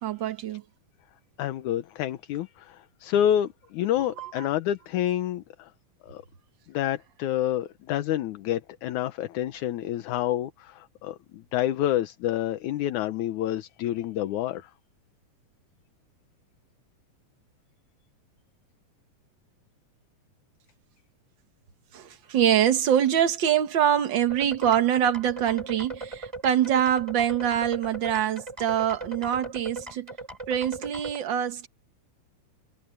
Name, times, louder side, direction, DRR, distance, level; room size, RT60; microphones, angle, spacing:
voice 1, 0.0-0.6 4.0-4.5 21.9-30.1 30.5-31.7, right 10 dB, 65° right, 1.2 m, -24 dB
voice 2, 1.4-5.7 6.0-6.2 6.7-14.7, left 11 dB, 70° left, 2.3 m, -28 dB
sound 1, 24.3-31.2, right 3 dB, 10° right, 3.5 m, -38 dB
omnidirectional pair, 3.8 m